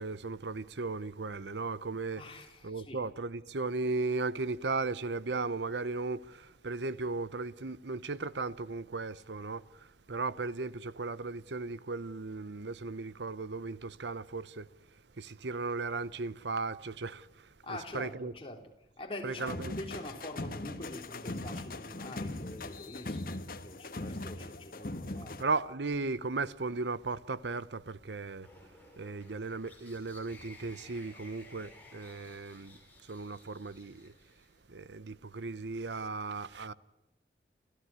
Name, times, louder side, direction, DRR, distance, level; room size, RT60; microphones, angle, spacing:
voice 1, 0.0-2.2 2.6-14.7 15.2-18.3 19.2-19.7 25.4-28.5 29.0-34.1 34.7-36.7, right 3 dB, 85° right, 0.9 m, -36 dB
voice 2, 2.2-3.0 17.6-18.6 19.0-25.4, left 1 dB, 30° left, 3.3 m, -45 dB
sound 1, 19.4-25.4, left 2 dB, 50° left, 1.4 m, -40 dB
sound 2, 28.4-34.6, left 2 dB, 10° left, 5.9 m, -56 dB
28.5 x 15.0 x 9.5 m
head